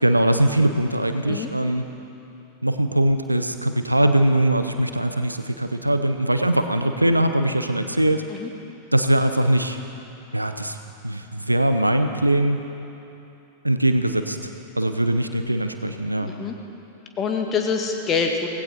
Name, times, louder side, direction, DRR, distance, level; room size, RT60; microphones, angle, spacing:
voice 1, 0.0-1.8 2.6-8.2 8.9-9.8 10.3-10.8 11.0-12.6 13.6-14.4 14.8-16.3, right 1 dB, 85° right, 8 dB, 0.8 m, -21 dB
voice 2, 16.2-16.6 17.2-18.5, left 5 dB, 25° left, 3 dB, 1.8 m, -25 dB
18.0 x 16.5 x 4.5 m, 2.8 s
figure-of-eight pair, 90°, 0 cm